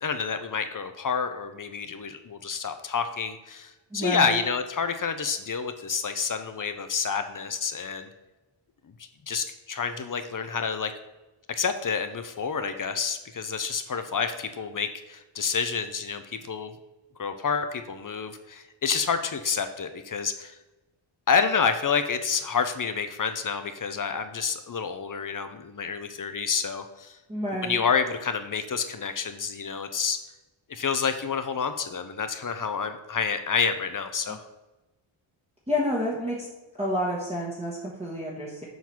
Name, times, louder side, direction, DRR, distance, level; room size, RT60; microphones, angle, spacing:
voice 1, 0.0-8.1 9.3-10.9 11.6-16.7 17.2-20.6 21.3-27.2 27.6-30.2 30.7-34.4, left 6 dB, 40° left, 9 dB, 0.6 m, -28 dB
voice 2, 3.9-4.4 27.3-27.8 35.7-36.5 36.8-38.6, equal, 10° right, -6 dB, 1.2 m, -29 dB
7.2 x 3.9 x 6.0 m, 1.1 s
wide cardioid pair, 150°, 50 cm